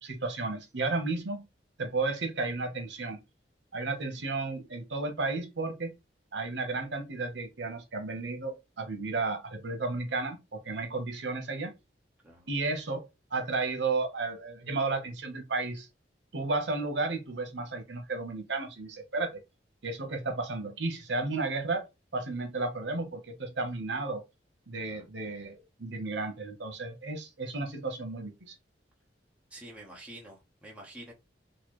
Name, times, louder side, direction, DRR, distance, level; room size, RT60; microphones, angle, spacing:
voice 1, 0.0-1.4 1.8-3.2 3.7-5.9 6.3-11.7 12.5-15.9 16.3-19.4 19.8-21.8 22.1-24.2 24.7-28.5, right 3 dB, 80° right, 1.0 m, -33 dB
voice 2, 29.5-31.1, right 1 dB, 5° right, 1.1 m, -48 dB
4.1 x 2.2 x 3.1 m
head